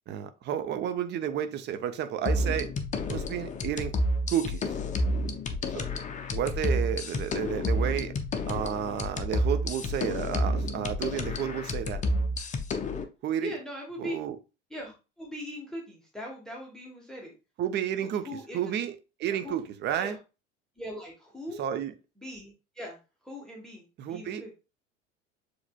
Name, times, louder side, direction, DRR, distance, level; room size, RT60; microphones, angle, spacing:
voice 1, 0.1-2.7 3.1-3.9 4.3-4.6 5.7-5.8 6.3-8.1 8.4-12.0 13.2-13.6 14.0-14.4 17.6-18.3 18.5-20.2 21.6-21.9 24.0-24.6, right 9 dB, 30° right, 0.6 m, -31 dB
sound 1, 2.3-13.0, left 1 dB, 20° left, 0.6 m, -30 dB
voice 2, 13.4-14.1 14.7-17.3 18.0-18.6 19.3-19.6 20.0-20.2 20.8-21.6 22.2-23.0 23.2-24.6, left 1 dB, ahead, 1.2 m, -40 dB
7.1 x 3.1 x 2.3 m
figure-of-eight pair, 70°, 38 cm